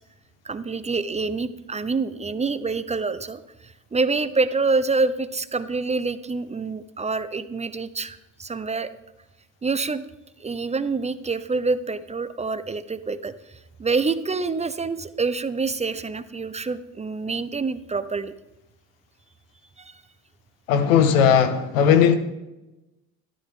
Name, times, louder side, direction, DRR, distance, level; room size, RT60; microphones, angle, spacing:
voice 1, 0.4-8.9 9.6-10.0 10.4-18.3 19.8-20.0, right 4 dB, 15° right, 0.8 m, -27 dB
voice 2, 20.7-22.1, left 8 dB, 85° left, 1.7 m, -17 dB
15.0 x 13.0 x 3.8 m
supercardioid pair, 90°, 39 cm